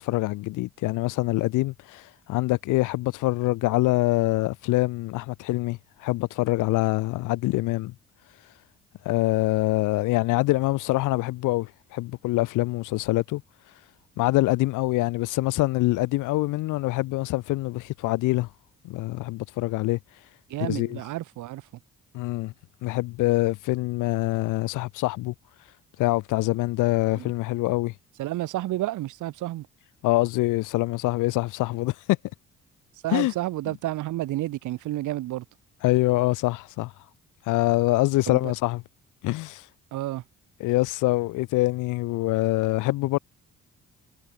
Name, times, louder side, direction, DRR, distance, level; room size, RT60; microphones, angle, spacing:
voice 1, 0.0-7.9 9.0-13.4 14.2-18.5 18.8-20.0 20.6-21.0 22.1-22.5 22.8-25.3 26.0-27.9 30.0-31.9 33.1-33.3 35.8-36.9 37.5-38.8 39.2-39.6 40.6-43.2, left 19 dB, 90° left, 0.6 m, -25 dB
voice 2, 20.5-21.6 27.1-27.3 28.2-29.7 33.0-35.4 38.3-38.5 39.9-40.2, right 15 dB, 80° right, 1.1 m, -30 dB
cardioid pair, 90°, 30 cm